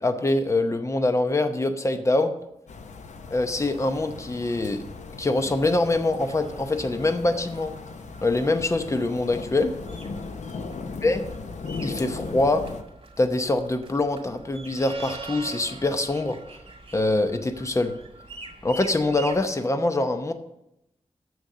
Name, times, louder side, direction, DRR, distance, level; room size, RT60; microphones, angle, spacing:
voice 1, 0.0-2.3 3.3-4.8 5.2-7.7 8.2-9.7 11.0-11.3 11.8-12.6 13.2-16.4 16.9-17.9 18.6-20.3, left 2 dB, 25° left, 8 dB, 0.8 m, -24 dB
sound 1, 2.7-12.8, left 4 dB, 85° left, 0.7 m, -38 dB
sound 2, 6.3-19.4, right 3 dB, 50° right, 2.1 m, -45 dB
7.0 x 6.4 x 7.5 m, 0.84 s
wide cardioid pair, 105°, 12 cm